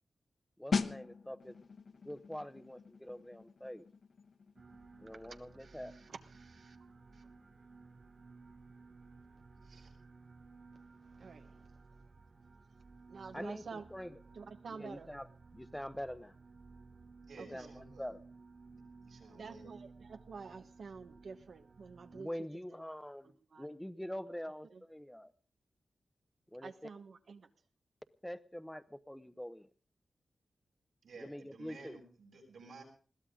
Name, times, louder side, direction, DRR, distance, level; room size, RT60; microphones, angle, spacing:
voice 1, 0.6-1.6 2.0-3.8 5.0-5.9 13.3-14.2 14.7-15.3 15.5-16.3 17.5-18.2 22.1-25.3 26.5-26.7 28.2-29.7 31.2-32.0, equal, 5° left, 13 dB, 0.9 m, -45 dB
sound 1, 0.7-11.2 11.5-11.7, left 5 dB, 60° left, 1.0 m, -43 dB
sound 2, 4.6-22.2, right 4 dB, 40° right, 0.9 m, -57 dB
voice 2, 5.6-6.9 7.1-7.3 11.2-11.7 13.1-13.8 14.3-15.1 17.4-17.7 19.3-22.5 23.5-23.7 24.7-24.8 26.6-27.5, right 5 dB, 70° right, 7 dB, 1.2 m, -49 dB
voice 3, 17.2-18.0 19.0-19.7 31.0-32.8, right 3 dB, 90° right, 1 dB, 7.6 m, -54 dB
21.0 x 16.0 x 3.8 m, 0.39 s
wide cardioid pair, 145°, 0 cm